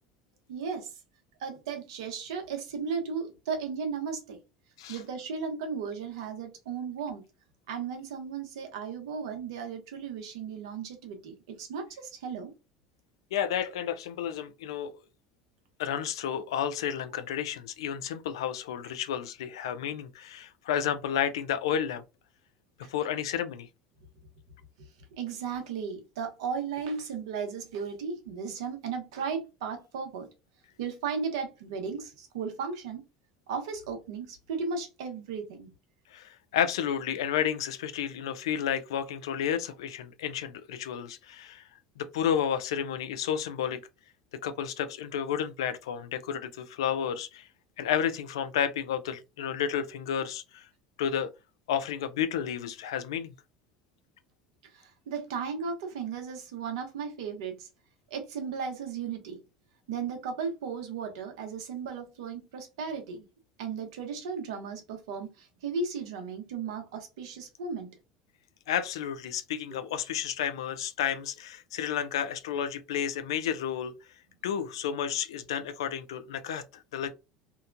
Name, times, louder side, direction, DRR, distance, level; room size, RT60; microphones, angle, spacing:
voice 1, 0.5-0.9 1.4-4.4 4.9-7.3 7.7-12.5 13.7-13.8 22.8-22.9 24.8-24.9 25.2-30.3 30.8-33.0 33.5-35.7 54.6-57.7 58.1-59.4 59.9-63.3 63.6-67.9 69.7-70.0, right 5 dB, 85° right, 0.8 m, -35 dB
voice 2, 13.3-14.9 15.8-22.0 22.9-23.7 36.1-41.6 42.0-43.8 44.4-47.5 47.8-50.6 51.0-51.3 51.7-53.3 68.7-73.9 74.4-77.1, left 9 dB, 90° left, 0.4 m, -31 dB
2.8 x 2.1 x 2.5 m
supercardioid pair, 90°, 3 cm